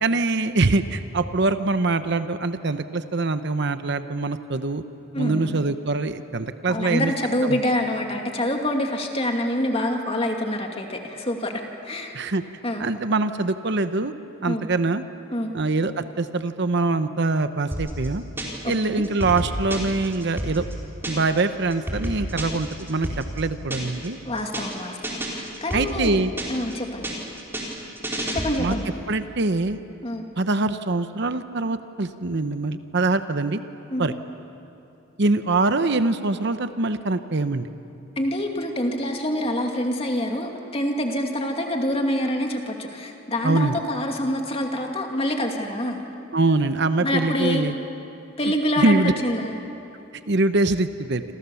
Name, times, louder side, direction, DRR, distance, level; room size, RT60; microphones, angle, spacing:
voice 1, 0.0-4.8 5.2-7.1 7.4-7.6 12.1-12.4 12.8-14.1 14.4-15.0 15.5-18.2 18.7-20.7 21.1-24.2 25.7-26.3 28.6-28.7 29.1-29.8 30.4-33.6 34.0-34.1 35.2-37.7 43.4-43.8 46.3-47.7 48.8-49.1 50.3-51.2, right 3 dB, 55° right, 10 dB, 0.9 m, -23 dB
voice 2, 5.1-5.6 6.7-11.5 11.8-12.1 12.6-12.8 14.4-14.7 15.3-15.5 18.9-19.0 24.2-27.1 28.3-28.9 30.0-30.3 33.9-34.1 38.2-46.0 47.0-47.6 48.4-49.6, left 1 dB, 30° left, 2 dB, 2.5 m, -26 dB
sound 1, 17.7-18.7 19.0-21.4 21.7-24.1 24.4-24.7 25.0-26.7 27.0-28.8, right 1 dB, 10° right, 4.1 m, -30 dB
28.0 x 27.0 x 7.1 m, 2.7 s
head